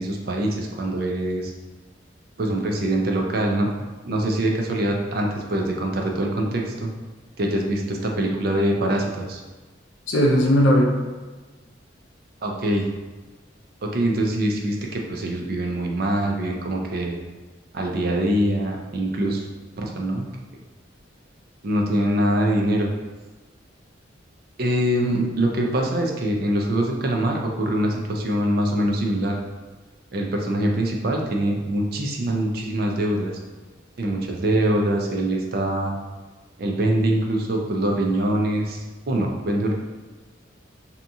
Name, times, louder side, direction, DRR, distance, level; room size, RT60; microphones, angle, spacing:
voice 1, 0.0-1.5 2.4-3.7 4.0-6.9 7.4-9.4 12.4-12.9 13.8-17.2 17.7-19.4 19.8-20.3 21.6-22.9 24.6-29.4 30.1-33.4 34.0-35.9 36.6-39.7, right 1 dB, 50° right, 1 dB, 0.4 m, -24 dB
voice 2, 10.1-11.0, equal, 70° left, 0 dB, 0.5 m, -17 dB
2.7 x 2.3 x 2.6 m, 1.3 s
head